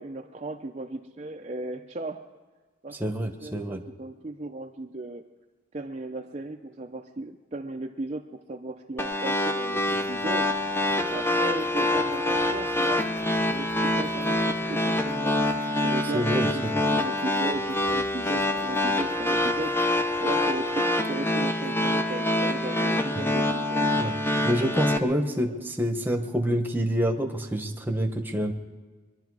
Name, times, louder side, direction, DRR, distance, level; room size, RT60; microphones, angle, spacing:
voice 1, 0.0-2.3 2.8-5.2 5.7-9.8 10.1-10.5 11.1-13.1 13.4-15.4 15.8-23.9 25.4-25.6, right 2 dB, 30° right, 3 dB, 0.5 m, -36 dB
voice 2, 3.0-3.8 16.1-16.8 23.9-24.2 24.4-28.5, equal, 10° right, 4 dB, 1.0 m, -27 dB
sound 1, 9.0-25.0, left 1 dB, 10° left, 0.6 m, -26 dB
sound 2, 9.7-20.7, equal, 35° left, 4.3 m, -52 dB
23.0 x 11.5 x 4.8 m, 1.4 s
head